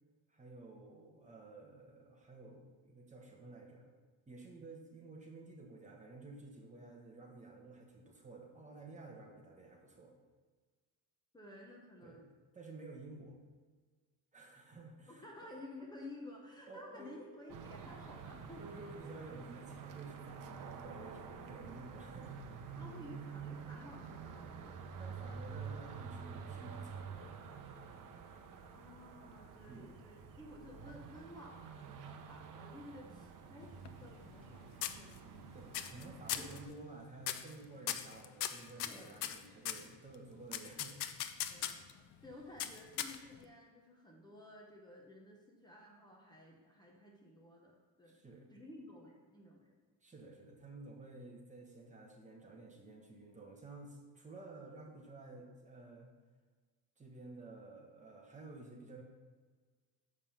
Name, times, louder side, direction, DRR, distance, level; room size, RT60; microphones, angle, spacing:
voice 1, 0.3-3.9 4.3-10.1 12.0-12.2 12.5-13.4 14.3-15.5 16.7-17.1 18.6-22.4 25.0-27.4 29.7-29.9 35.5-41.0 41.3-41.5 48.1-48.5 50.0-56.1 57.0-59.0, right 2 dB, 20° right, 0 dB, 1.1 m, -52 dB
voice 2, 11.3-12.3 15.1-19.1 22.8-24.8 28.7-35.7 36.3-36.4 38.8-39.4 41.5-41.9 42.2-48.2 48.5-49.7, left 1 dB, 10° left, -2 dB, 0.9 m, -54 dB
sound 1, 17.5-36.7, right 6 dB, 55° right, 0.8 m, -49 dB
sound 2, 33.6-34.5 34.8-35.4 35.7-36.0 36.3-36.6 37.2-37.5 37.9-39.9 40.5-41.9 42.6-43.4, left 11 dB, 85° left, 0.6 m, -39 dB
7.4 x 5.4 x 5.4 m, 1.5 s
cardioid pair, 155°, 38 cm